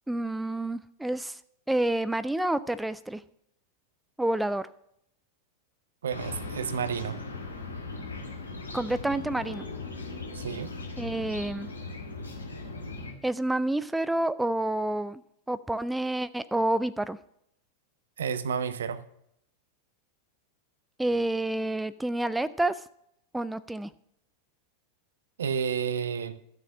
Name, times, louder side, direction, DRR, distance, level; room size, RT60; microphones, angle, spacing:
voice 1, 0.1-1.4 1.7-3.2 4.2-4.7 8.7-9.6 11.0-11.7 13.2-15.2 15.5-17.2 21.0-22.8 23.3-23.9, right 1 dB, 5° right, 15 dB, 0.4 m, -28 dB
voice 2, 6.0-7.2 10.3-10.8 18.2-19.0 25.4-26.4, right 7 dB, 65° right, 15 dB, 0.7 m, -31 dB
sound 1, 6.1-13.1, left 3 dB, 75° left, 1.9 m, -38 dB
12.5 x 6.5 x 6.3 m, 0.74 s
figure-of-eight pair, 90°, 0 cm